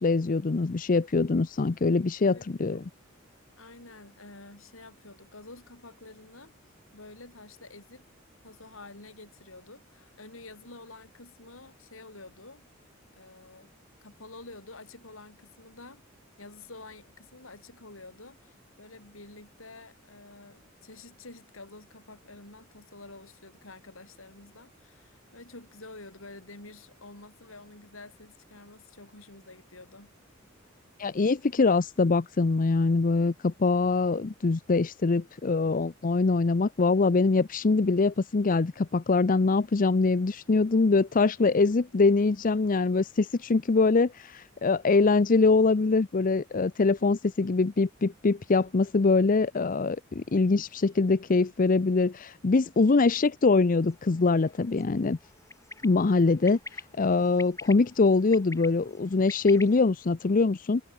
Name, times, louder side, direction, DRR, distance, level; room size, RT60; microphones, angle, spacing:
voice 1, 0.0-2.8 31.0-55.2 55.8-60.8, left 3 dB, 45° left, 0.6 m, -23 dB
voice 2, 2.2-2.8 3.6-6.5 6.9-8.1 8.4-12.6 13.1-13.7 14.0-16.0 16.4-30.1 41.5-41.6, left 2 dB, 85° left, 5.8 m, -49 dB
sound 1, 53.8-59.7, left 3 dB, 15° left, 4.6 m, -47 dB
head